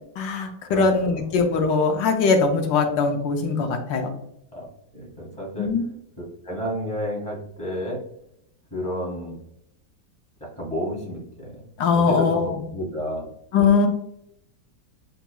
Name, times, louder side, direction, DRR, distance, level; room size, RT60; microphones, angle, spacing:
voice 1, 0.2-4.1 5.6-5.8 11.8-12.6 13.5-13.9, left 5 dB, 80° left, 4 dB, 1.4 m, -21 dB
voice 2, 0.7-1.2 4.5-4.6 4.9-5.7 6.2-8.0 8.7-9.3 10.6-11.5 11.9-13.3, equal, 5° left, -2 dB, 1.4 m, -31 dB
7.9 x 2.9 x 2.2 m, 0.77 s
omnidirectional pair, 2.0 m